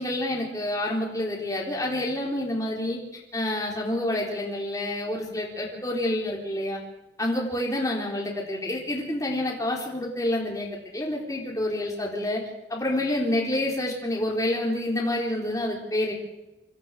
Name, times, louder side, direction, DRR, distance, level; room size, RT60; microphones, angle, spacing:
voice 1, 0.0-3.0 3.3-6.8 7.2-12.4 12.7-16.1, left 1 dB, 20° left, -2 dB, 4.1 m, -28 dB
26.5 x 13.5 x 7.5 m, 0.96 s
head